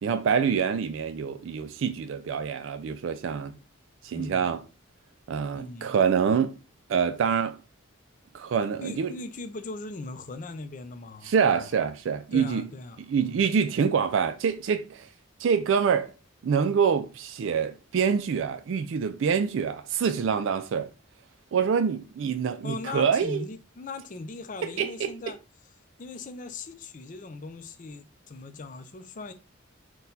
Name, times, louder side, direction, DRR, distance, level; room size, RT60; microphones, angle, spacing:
voice 1, 0.0-3.6 4.0-4.6 5.3-6.6 6.9-7.6 8.3-9.1 11.2-12.6 13.1-15.1 15.4-16.1 16.4-20.9 21.5-23.4 24.6-25.1, right 6 dB, 65° right, 0.3 m, -26 dB
voice 2, 4.1-4.6 5.5-6.0 8.8-11.7 12.3-13.5 22.6-25.4 26.0-29.3, left 3 dB, 40° left, 0.5 m, -39 dB
4.3 x 2.3 x 3.9 m
head